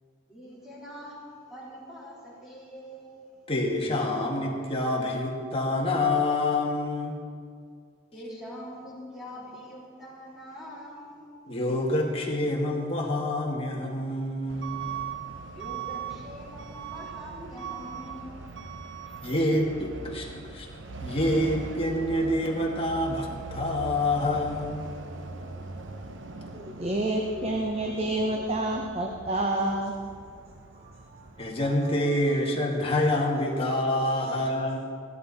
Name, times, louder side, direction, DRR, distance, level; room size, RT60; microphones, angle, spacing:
voice 1, 0.3-3.5 8.1-11.2 15.5-18.7 19.0-19.1, equal, ahead, -7 dB, 3.6 m, -44 dB
voice 2, 3.5-7.2 11.5-14.9 19.2-20.7 21.0-24.9 31.4-34.8, left 1 dB, 30° left, -1 dB, 1.9 m, -27 dB
Truck / Alarm, 14.5-31.7, right 5 dB, 70° right, 0.9 m, -40 dB
voice 3, 26.4-29.9 30.7-31.5, right 1 dB, 30° right, 1 dB, 0.9 m, -29 dB
15.5 x 11.5 x 4.2 m, 2.2 s
head